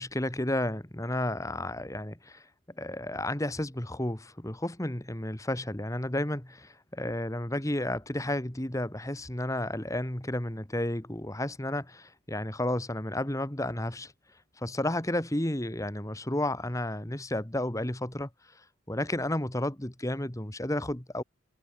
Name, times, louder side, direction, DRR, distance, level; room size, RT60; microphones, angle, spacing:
voice 1, 0.0-2.4 2.8-14.1 14.6-18.3 18.9-21.2, left 1 dB, 15° left, 1.4 m, -32 dB
head